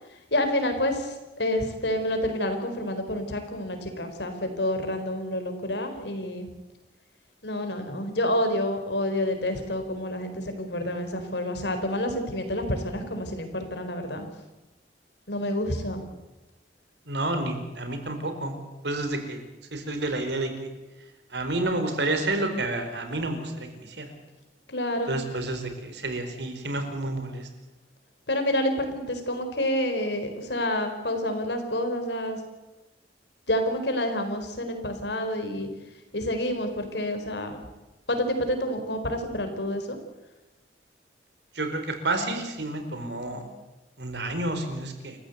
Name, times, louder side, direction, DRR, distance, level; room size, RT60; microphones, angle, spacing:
voice 1, 0.3-6.5 7.4-14.3 15.3-16.0 24.7-25.1 28.3-32.4 33.5-35.7 36.1-37.6 38.1-40.0, left 1 dB, 75° left, 7 dB, 4.4 m, -28 dB
voice 2, 17.1-18.5 18.8-19.4 19.7-20.5 21.3-23.7 24.0-24.1 25.1-27.5 41.6-43.4 44.0-45.2, right 2 dB, 70° right, 6 dB, 4.5 m, -29 dB
29.0 x 15.0 x 8.1 m, 1.1 s
head